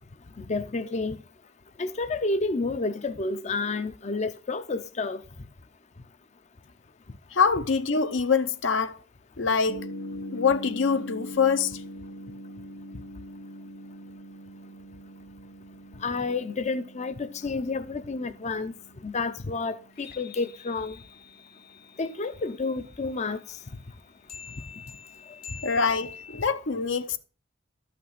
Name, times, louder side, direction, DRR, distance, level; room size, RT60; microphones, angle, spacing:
voice 1, 0.5-1.2 1.8-5.2 16.0-17.1 17.4-18.7 19.0-20.9 22.0-23.4, left 3 dB, 35° left, 0.5 m, -30 dB
voice 2, 7.3-9.0 9.4-9.8 10.3-11.8 25.6-27.2, left 5 dB, 75° left, 0.8 m, -24 dB
sound 1, 9.7-22.7 24.3-26.5, left 2 dB, 55° left, 1.2 m, -43 dB
12.5 x 5.9 x 5.8 m
head